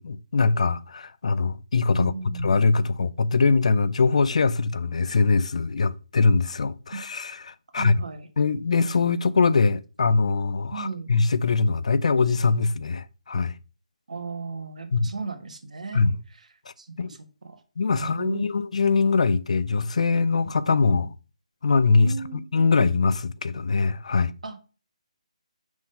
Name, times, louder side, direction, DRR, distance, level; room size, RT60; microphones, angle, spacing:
voice 1, 0.0-2.1 2.4-7.9 8.4-13.5 14.9-15.1 15.9-16.1 17.0-17.1 17.8-21.1 21.6-22.1 22.5-24.3, left 4 dB, 65° left, 0.5 m, -22 dB
voice 2, 1.9-2.6 6.9-7.0 7.7-8.3 10.7-11.1 14.1-16.0 16.3-16.5 16.8-17.6 17.9-18.4 22.0-22.5 24.4-24.6, right 4 dB, 75° right, 1.4 m, -35 dB
6.1 x 3.7 x 5.5 m
hypercardioid pair, 165°, 4 cm